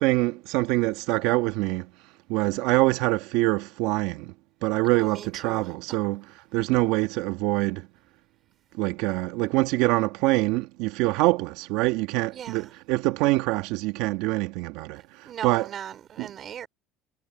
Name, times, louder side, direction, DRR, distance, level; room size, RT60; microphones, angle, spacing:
voice 1, 0.0-1.9 2.3-4.3 4.6-6.2 6.5-7.9 8.8-15.7 16.2-16.3, right 20 dB, 75° right, 1.8 m, -25 dB
voice 2, 4.9-5.7 12.3-12.7 15.3-16.7, right 9 dB, 45° right, 3.9 m, -38 dB
supercardioid pair, 95°, 0 cm